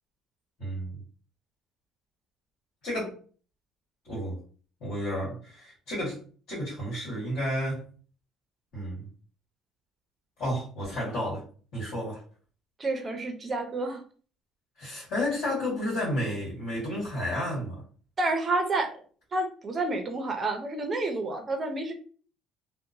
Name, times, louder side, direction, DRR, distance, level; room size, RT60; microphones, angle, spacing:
voice 1, 0.6-1.0 2.8-3.1 4.0-4.4 4.8-6.2 6.5-7.8 8.7-9.0 10.4-11.4 11.7-12.2 14.8-17.8, equal, 60° left, -9 dB, 1.5 m, -31 dB
voice 2, 12.8-14.0 18.2-18.9 19.3-21.9, right 2 dB, 25° right, 5 dB, 0.5 m, -29 dB
2.8 x 2.0 x 2.5 m, 0.42 s
cardioid pair, 165°, 0 cm